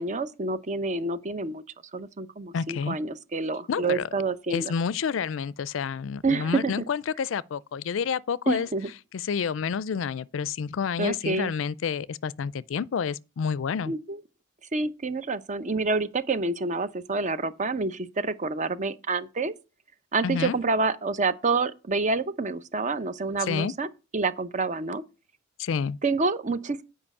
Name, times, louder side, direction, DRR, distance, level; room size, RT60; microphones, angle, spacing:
voice 1, 0.0-1.6 1.9-4.7 6.2-6.7 8.5-8.9 11.0-11.5 13.9-14.2 14.7-19.5 20.1-23.9 24.1-25.0 26.0-26.8, right 3 dB, 40° right, 0.7 m, -28 dB
voice 2, 2.5-3.0 3.7-4.1 4.5-8.7 9.1-13.9 20.2-20.6 23.4-23.7 25.6-26.0, left 6 dB, 70° left, 0.4 m, -29 dB
8.6 x 5.1 x 6.5 m
head